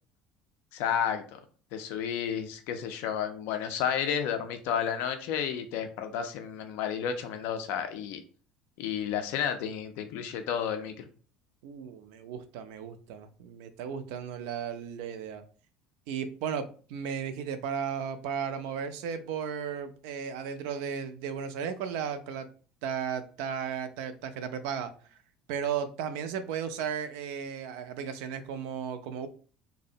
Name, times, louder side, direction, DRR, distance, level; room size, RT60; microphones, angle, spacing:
voice 1, 0.7-1.4 1.7-8.2 8.8-11.0, left 8 dB, 60° left, 7 dB, 0.3 m, -31 dB
voice 2, 11.6-15.5 16.1-22.5 22.8-24.9 25.5-29.3, right 7 dB, 65° right, 10 dB, 0.3 m, -35 dB
2.5 x 2.0 x 2.6 m, 0.40 s
hypercardioid pair, 65°, 4 cm